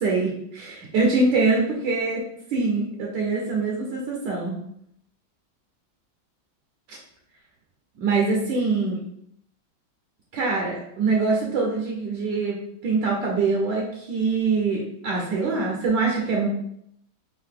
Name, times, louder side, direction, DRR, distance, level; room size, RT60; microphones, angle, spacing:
voice 1, 0.0-2.2 2.5-4.6 6.9-7.0 8.0-9.0 10.3-16.5, right 3 dB, 70° right, -1 dB, 1.3 m, -24 dB
4.7 x 2.6 x 3.6 m, 0.74 s
omnidirectional pair, 2.1 m